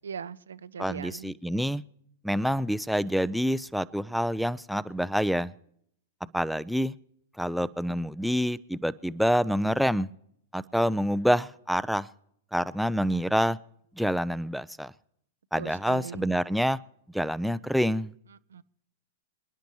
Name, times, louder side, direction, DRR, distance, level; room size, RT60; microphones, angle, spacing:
voice 1, 0.0-1.3 15.6-16.3 18.3-18.6, right 7 dB, 75° right, 15 dB, 0.5 m, -40 dB
voice 2, 0.8-1.8 2.2-5.5 6.3-6.9 7.4-10.1 10.5-12.1 12.5-13.6 14.0-14.9 15.5-16.8 17.1-18.1, equal, ahead, 13 dB, 0.4 m, -27 dB
27.0 x 10.5 x 3.1 m, 0.69 s
hypercardioid pair, 105°, 0 cm